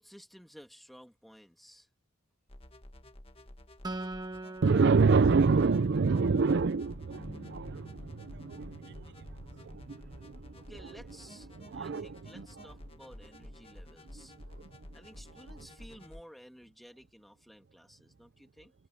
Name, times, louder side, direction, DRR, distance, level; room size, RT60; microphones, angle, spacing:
voice 1, 0.0-1.9 3.4-3.5 10.6-14.3 14.9-18.7, equal, ahead, 2.1 m, -54 dB
sound 1, 2.5-16.2, left 1 dB, 30° left, 1.6 m, -51 dB
Acoustic guitar, 3.8-7.3, right 2 dB, 20° right, 1.3 m, -43 dB
voice 2, 4.6-7.9 8.2-8.8 11.7-12.5, right 4 dB, 55° right, 0.5 m, -26 dB
sound 2, 7.1-11.3, left 1 dB, 50° left, 2.1 m, -53 dB
head